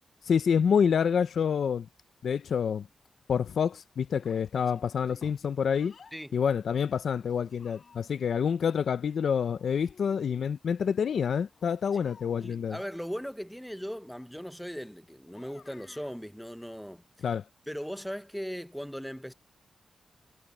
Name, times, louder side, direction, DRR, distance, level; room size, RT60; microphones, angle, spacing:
voice 1, 0.3-1.9 2.2-2.9 3.3-5.9 6.3-12.8 17.2-17.4, left 7 dB, 70° left, 0.7 m, -27 dB
Child speech kid speaking, 4.2-6.2 7.1-8.3 9.5-10.6 11.0-12.7 15.3-16.1, left 5 dB, 50° left, 3.9 m, -55 dB
voice 2, 12.4-17.0 17.7-19.3, equal, ahead, 0.8 m, -38 dB
wide cardioid pair, 130°, 0 cm